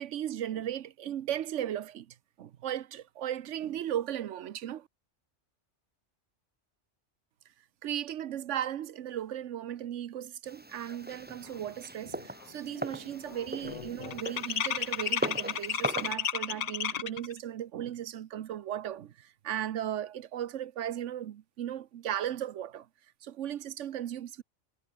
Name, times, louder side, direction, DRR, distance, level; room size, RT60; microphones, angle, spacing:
voice 1, 0.0-4.9 7.8-22.9 23.2-24.4, right 11 dB, 90° right, 1.1 m, -36 dB
sound 1, 10.5-16.1, right 1 dB, 10° right, 1.1 m, -40 dB
sound 2, 11.6-11.7 12.1-12.4 12.7-17.3, left 8 dB, 50° left, 0.5 m, -33 dB
omnidirectional pair, 1.2 m